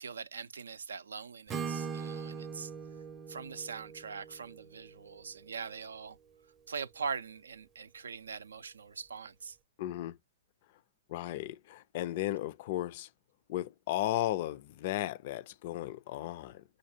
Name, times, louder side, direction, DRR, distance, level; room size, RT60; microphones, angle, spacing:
voice 1, 0.0-2.7 3.3-6.2 6.7-9.6, right 5 dB, 85° right, 0.4 m, -42 dB
Acoustic guitar / Strum, 1.5-5.5, right 6 dB, 20° right, 0.6 m, -41 dB
voice 2, 9.8-10.2 11.1-13.1 13.5-16.6, left 14 dB, 50° left, 0.4 m, -35 dB
6.3 x 2.3 x 2.7 m
hypercardioid pair, 130°, 0 cm